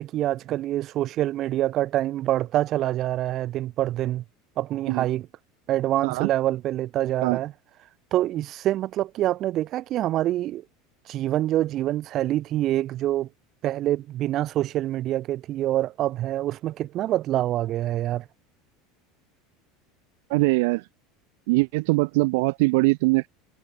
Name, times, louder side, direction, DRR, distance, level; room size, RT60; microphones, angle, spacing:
voice 1, 0.0-4.2 4.6-5.3 5.7-7.5 8.1-10.6 11.1-13.3 13.6-18.2, right 14 dB, 40° right, 1.0 m, -26 dB
voice 2, 20.3-20.8 21.5-23.3, right 26 dB, 70° right, 0.6 m, -22 dB
supercardioid pair, 145°, 0 cm